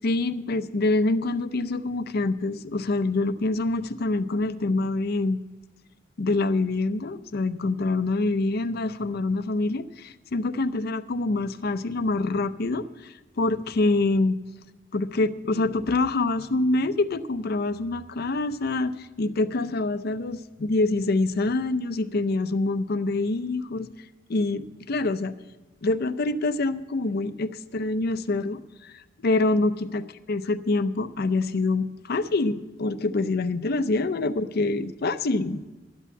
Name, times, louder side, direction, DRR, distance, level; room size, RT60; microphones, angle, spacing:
voice 1, 0.0-5.4 6.2-14.4 14.9-23.9 24.3-25.3 25.8-30.0 30.3-35.7, left 2 dB, 55° left, 13 dB, 0.5 m, -26 dB
12.0 x 8.4 x 7.1 m, 1.2 s
head